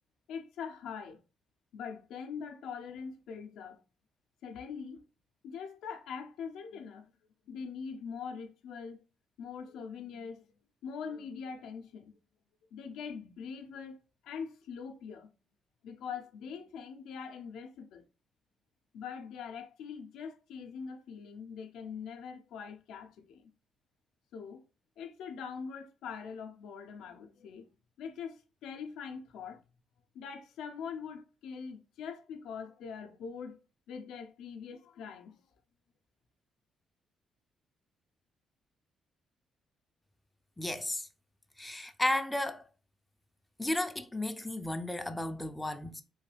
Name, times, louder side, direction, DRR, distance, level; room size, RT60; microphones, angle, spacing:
voice 1, 0.3-1.2 1.7-3.8 4.4-5.0 5.4-7.1 7.5-9.0 9.4-10.5 10.8-12.2 12.7-14.0 14.2-15.3 15.8-18.1 18.9-23.5 24.3-24.6 25.0-27.7 28.0-29.6 30.1-33.6 33.9-35.4, left 6 dB, 85° left, 0.5 m, -43 dB
voice 2, 40.6-41.1 41.6-42.7 43.6-46.0, left 1 dB, 10° left, 0.3 m, -33 dB
3.1 x 2.2 x 3.1 m
cardioid pair, 90°, 0 cm